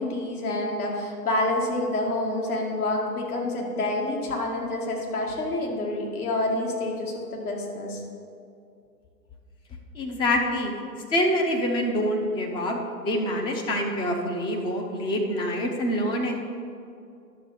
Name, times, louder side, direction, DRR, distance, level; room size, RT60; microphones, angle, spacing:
voice 1, 0.0-8.0, left 2 dB, 65° left, -1 dB, 2.4 m, -28 dB
voice 2, 9.9-10.7 11.1-12.8 13.0-16.4, equal, 10° left, 1 dB, 0.5 m, -26 dB
10.5 x 6.6 x 4.9 m, 2.4 s
figure-of-eight pair, 115°, 48 cm